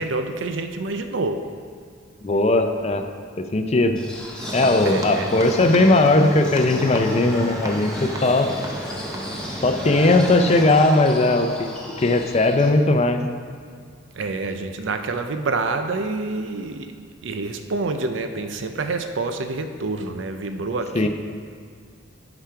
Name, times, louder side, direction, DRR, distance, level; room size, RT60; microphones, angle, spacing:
voice 1, 0.0-1.5 4.8-5.3 14.2-21.1, right 3 dB, 75° right, 7 dB, 0.5 m, -27 dB
voice 2, 2.2-3.1 3.4-4.0 4.5-8.5 9.6-11.7 12.0-13.2 20.9-21.1, left 2 dB, 35° left, 6 dB, 0.6 m, -18 dB
sound 1, 4.0-12.7, left 1 dB, 5° left, 1.1 m, -35 dB
sound 2, 4.4-10.7, right 1 dB, 20° right, 0.7 m, -33 dB
9.3 x 4.9 x 5.7 m, 2.1 s
head